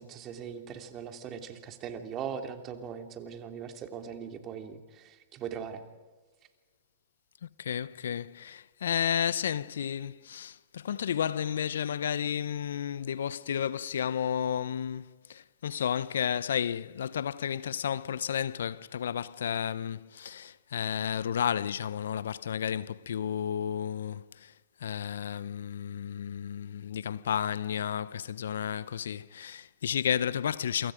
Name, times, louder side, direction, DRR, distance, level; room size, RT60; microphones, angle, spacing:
voice 1, 0.0-5.8, right 7 dB, 35° right, 3.1 m, -40 dB
voice 2, 7.4-24.5 24.8-30.9, left 8 dB, 75° left, 0.8 m, -32 dB
28.0 x 25.5 x 5.1 m
hypercardioid pair, 110°, 0 cm